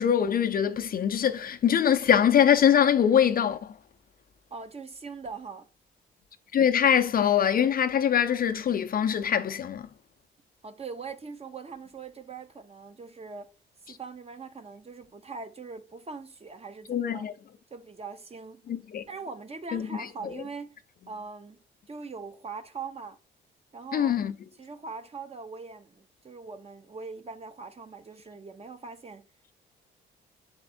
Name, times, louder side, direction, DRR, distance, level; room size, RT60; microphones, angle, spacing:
voice 1, 0.0-3.7 6.5-9.9 13.9-14.0 16.9-17.3 18.7-19.0 19.7-19.9 20.2-20.3 23.9-24.3, left 9 dB, 50° left, 0.5 m, -23 dB
voice 2, 4.5-5.7 10.6-13.5 13.9-17.2 17.7-18.6 19.1-20.7 21.1-23.2 23.7-24.2 24.6-29.3, right 4 dB, 30° right, 0.9 m, -41 dB
6.7 x 4.3 x 4.3 m
cardioid pair, 90°, 20 cm